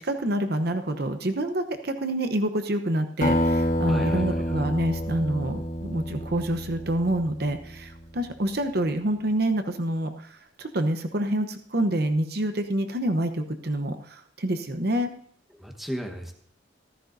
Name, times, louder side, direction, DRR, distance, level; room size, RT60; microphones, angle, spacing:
voice 1, 0.0-15.1, right 1 dB, 55° right, 8 dB, 0.9 m, -27 dB
Acoustic guitar, 3.2-8.0, equal, 45° left, 1.5 m, -28 dB
voice 2, 3.9-4.6 15.6-16.3, equal, ahead, 2 dB, 1.2 m, -35 dB
14.5 x 13.5 x 2.7 m, 0.62 s
head